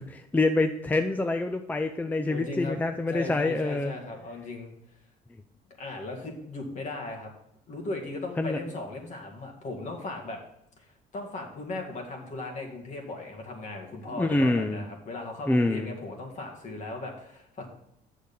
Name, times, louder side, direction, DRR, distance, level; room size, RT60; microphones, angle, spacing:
voice 1, 0.0-3.9 8.4-8.6 14.2-14.8 15.5-15.9, left 2 dB, 10° left, 8 dB, 0.4 m, -26 dB
voice 2, 2.3-4.7 5.8-7.3 7.7-10.4 11.1-17.7, left 2 dB, 45° left, 1 dB, 2.0 m, -37 dB
7.9 x 6.6 x 5.3 m, 0.79 s
cardioid pair, 110°, 17 cm